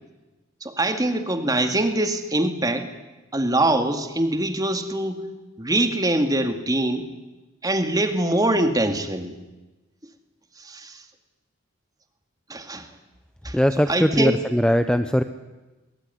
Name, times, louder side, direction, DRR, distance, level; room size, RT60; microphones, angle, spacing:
voice 1, 0.6-2.9 3.3-5.2 5.6-7.1 7.6-9.3 10.6-11.0 12.5-12.9 13.4-13.6 13.9-14.4, right 1 dB, 20° right, 7 dB, 2.2 m, -23 dB
voice 2, 13.5-15.2, equal, 5° left, 9 dB, 0.8 m, -20 dB
23.0 x 22.5 x 9.6 m, 1.1 s
head